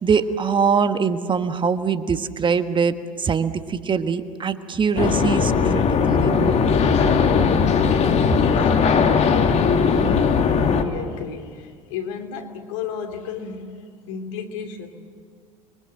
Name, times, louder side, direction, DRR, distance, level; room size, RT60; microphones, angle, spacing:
voice 1, 0.0-6.5, right 6 dB, 30° right, 10 dB, 1.4 m, -23 dB
sound 1, 5.0-10.8, left 6 dB, 40° left, 2.3 m, -18 dB
voice 2, 8.3-14.9, left 6 dB, 70° left, 6 dB, 2.8 m, -34 dB
30.0 x 23.0 x 7.8 m, 2.1 s
hypercardioid pair, 75°, 17 cm